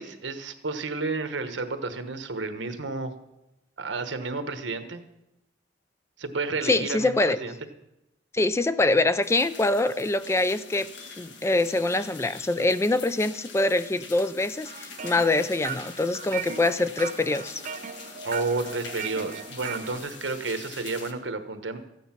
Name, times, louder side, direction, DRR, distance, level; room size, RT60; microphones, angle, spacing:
voice 1, 0.0-3.1 3.8-5.0 6.2-7.5 18.2-21.8, right 3 dB, 85° right, 8 dB, 1.2 m, -31 dB
voice 2, 6.6-7.4 8.3-10.9 11.2-17.6, left 2 dB, 15° left, 13 dB, 0.3 m, -24 dB
sound 1, 9.2-21.1, left 4 dB, 70° left, 1.4 m, -44 dB
sound 2, 14.7-20.0, right 7 dB, 45° right, 0.5 m, -38 dB
14.0 x 9.4 x 5.8 m, 0.91 s
head